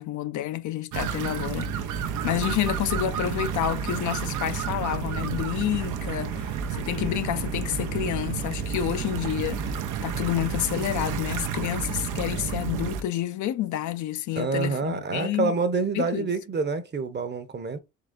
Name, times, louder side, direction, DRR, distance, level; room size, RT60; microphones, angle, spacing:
voice 1, 0.0-1.7 2.2-9.7 10.0-15.6 15.9-16.3, left 12 dB, 75° left, 0.6 m, -29 dB
sound 1, 0.9-13.0, right 7 dB, 85° right, 0.7 m, -30 dB
voice 2, 14.4-17.8, right 4 dB, 35° right, 0.9 m, -27 dB
3.8 x 3.3 x 3.7 m
cardioid pair, 90°, 30 cm